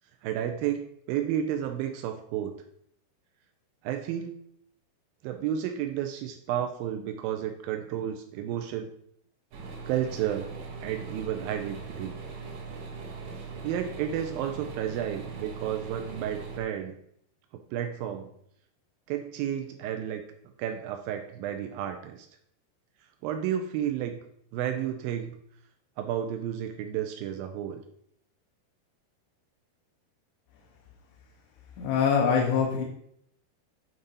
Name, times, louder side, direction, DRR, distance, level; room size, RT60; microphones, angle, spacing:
voice 1, 0.2-2.6 3.8-4.3 5.2-8.9 9.9-10.5 10.8-12.1 13.6-17.0 17.7-18.3 19.1-20.2 20.6-22.3 23.2-24.2 24.5-25.4 26.0-27.8, right 10 dB, 90° right, 5 dB, 2.0 m, -32 dB
sound 1, 9.5-16.6, right 4 dB, 65° right, 2.6 m, -40 dB
voice 2, 31.8-32.8, left 6 dB, 80° left, 0 dB, 3.0 m, -24 dB
9.4 x 3.9 x 5.5 m, 0.69 s
omnidirectional pair, 4.9 m